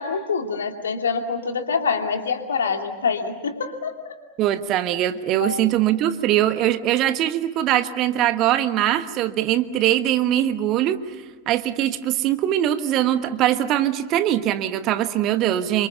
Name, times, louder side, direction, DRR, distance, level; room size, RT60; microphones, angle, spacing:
voice 1, 0.0-4.1 5.4-5.7, left 5 dB, 70° left, 5 dB, 2.6 m, -26 dB
voice 2, 4.4-11.0 11.5-15.9, right 12 dB, 35° right, 11 dB, 1.2 m, -21 dB
27.5 x 24.5 x 7.0 m, 1.2 s
figure-of-eight pair, 90°, 0 cm